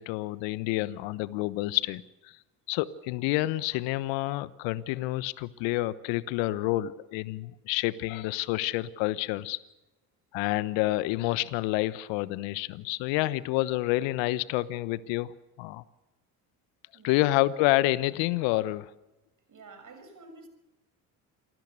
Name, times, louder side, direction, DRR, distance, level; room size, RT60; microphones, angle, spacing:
voice 1, 0.0-2.3 2.7-9.6 10.3-15.8 17.0-18.9, left 17 dB, 65° left, 17 dB, 1.2 m, -28 dB
voice 2, 16.9-17.3 19.3-20.5, right 3 dB, 40° right, 8 dB, 6.7 m, -50 dB
28.0 x 20.5 x 6.7 m, 1.0 s
hypercardioid pair, 60°, 48 cm